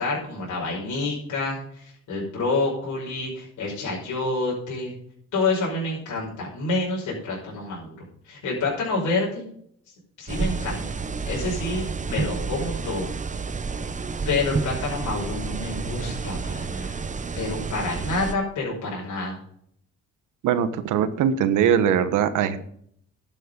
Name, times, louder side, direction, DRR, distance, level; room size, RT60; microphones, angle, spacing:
voice 1, 0.0-4.9 5.3-8.0 8.2-9.5 10.2-11.0 11.3-13.1 14.3-16.9 17.4-19.4, left 3 dB, 75° left, -4 dB, 5.5 m, -28 dB
sound 1, 10.3-18.3, right 4 dB, 25° right, 0.8 m, -30 dB
voice 2, 20.4-22.7, right 8 dB, 85° right, 11 dB, 1.3 m, -21 dB
12.0 x 7.6 x 5.3 m, 0.66 s
cardioid pair, 90°, 30 cm